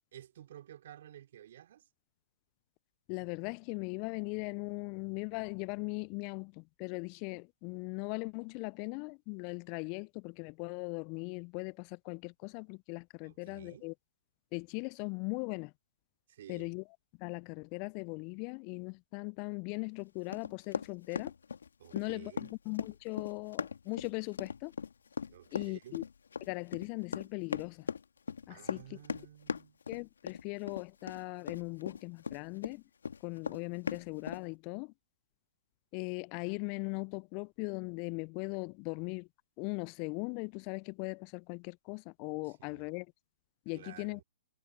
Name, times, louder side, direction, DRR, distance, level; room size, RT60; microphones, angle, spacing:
voice 1, 0.1-1.9 13.2-13.9 16.3-16.7 21.8-22.5 25.3-26.0 28.5-29.8 42.4-42.9 43.7-44.2, right 11 dB, 55° right, 3.5 m, -53 dB
voice 2, 3.1-13.9 14.5-15.7 16.5-16.8 17.2-21.3 21.9-24.7 25.5-26.0 26.4-27.9 28.5-28.8 29.9-32.8 33.2-34.9 35.9-39.3 39.6-43.1 43.7-44.2, left 34 dB, 35° left, 0.4 m, -39 dB
Run, 20.3-32.7 33.0-34.4, left 6 dB, 75° left, 1.8 m, -39 dB
figure-of-eight pair, 125°, 0 cm